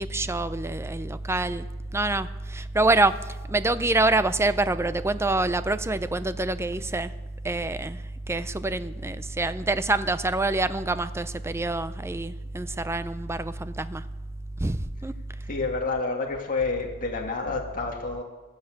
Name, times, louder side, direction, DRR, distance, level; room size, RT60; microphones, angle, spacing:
voice 1, 0.0-1.7 1.9-3.2 3.5-7.1 7.4-8.0 8.3-14.0 14.6-15.1, right 2 dB, 10° right, 13 dB, 0.5 m, -26 dB
voice 2, 15.5-18.2, left 3 dB, 40° left, 0 dB, 2.2 m, -29 dB
15.0 x 10.5 x 7.9 m, 1.2 s
head